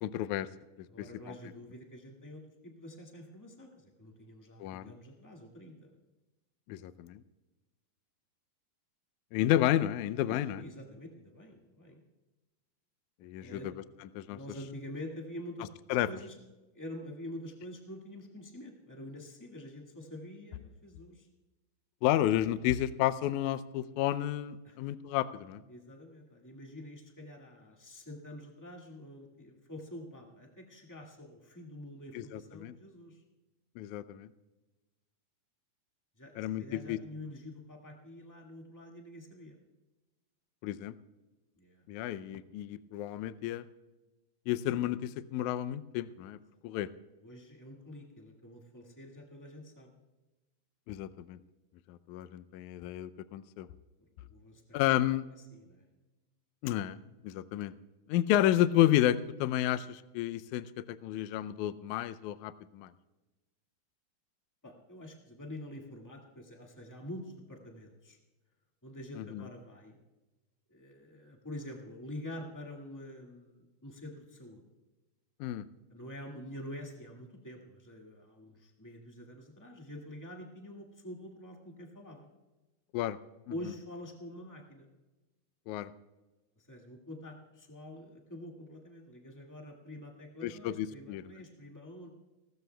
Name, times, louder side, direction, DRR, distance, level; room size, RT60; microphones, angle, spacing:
voice 1, 0.0-0.5 1.3-1.4 4.6-4.9 6.7-7.2 9.3-10.6 13.2-13.7 14.2-14.4 15.9-16.1 22.0-25.6 32.2-32.7 33.8-34.3 36.4-37.0 40.6-40.9 41.9-43.7 44.5-46.4 46.6-46.9 50.9-51.4 51.9-53.7 54.7-55.2 56.6-57.0 57.2-57.7 58.1-62.9 69.2-69.4 75.4-75.7 82.9-83.2 85.7-85.9 90.4-91.2, left 13 dB, 80° left, 13 dB, 1.8 m, -31 dB
voice 2, 0.9-6.0 10.3-12.0 13.4-13.7 14.3-15.7 16.1-16.4 16.7-21.3 24.6-24.8 25.7-33.2 36.2-39.6 41.6-41.8 46.5-46.6 47.2-49.9 54.2-54.6 55.5-55.8 64.6-68.2 68.8-70.0 70.7-74.6 75.9-82.3 83.5-84.9 86.6-92.1, left 1 dB, 20° left, 0 dB, 0.4 m, -47 dB
29.5 x 13.5 x 2.3 m, 1.1 s
omnidirectional pair, 4.0 m